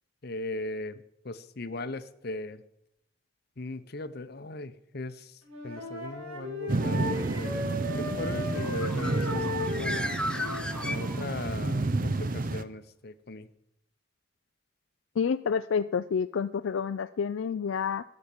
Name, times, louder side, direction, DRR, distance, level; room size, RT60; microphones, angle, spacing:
voice 1, 0.2-2.6 3.6-10.3 10.8-13.5, left 2 dB, 50° left, 12 dB, 0.7 m, -39 dB
Wind instrument woodwind instrument, 5.4-11.1, left 1 dB, 85° right, 3.6 m, -36 dB
sound 1, 6.7-12.6, right 2 dB, 40° right, 0.6 m, -30 dB
Bird, 8.6-11.6, left 1 dB, 5° left, 0.5 m, -35 dB
voice 2, 15.2-18.0, left 6 dB, 70° left, 11 dB, 0.4 m, -29 dB
13.5 x 6.4 x 7.2 m, 0.81 s
head